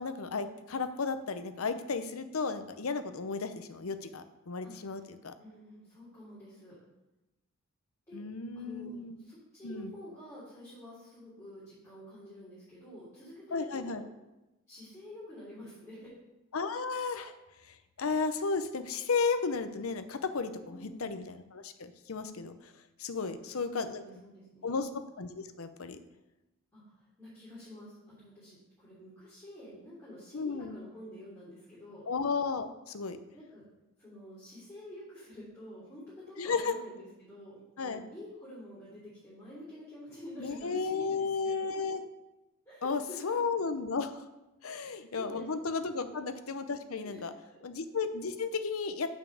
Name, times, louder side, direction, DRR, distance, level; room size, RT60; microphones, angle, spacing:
voice 1, 0.0-5.3 8.1-9.2 9.6-9.9 13.5-14.0 16.5-17.3 17.6-22.7 23.0-24.0 24.6-24.9 25.2-26.0 30.3-30.8 32.1-33.2 36.4-36.8 37.8-38.0 40.4-42.0 42.8-44.3 44.6-47.3 47.6-49.1, left 4 dB, 85° left, 10 dB, 0.7 m, -34 dB
voice 2, 5.3-6.8 8.1-8.2 8.5-14.0 14.7-16.1 20.6-21.0 23.2-23.3 23.7-24.8 26.7-32.0 33.3-33.6 34.0-41.6 42.6-43.4 44.6-45.4 45.9-46.2 47.0-47.2 47.5-47.6, left 1 dB, 15° left, -11 dB, 3.4 m, -49 dB
7.0 x 5.7 x 6.9 m, 1.0 s
head